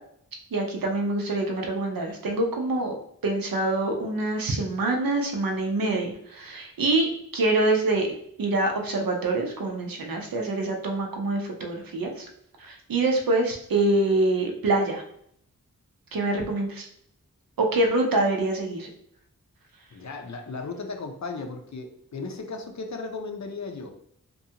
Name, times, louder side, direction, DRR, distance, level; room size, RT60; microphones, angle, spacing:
voice 1, 0.5-2.9 3.2-8.1 8.4-12.3 12.6-15.0 16.1-16.9 17.6-18.9, right 2 dB, 85° right, 2 dB, 0.6 m, -25 dB
voice 2, 19.9-23.9, left 3 dB, 55° left, 4 dB, 0.5 m, -36 dB
2.6 x 2.3 x 2.7 m, 0.70 s
cardioid pair, 45°, 34 cm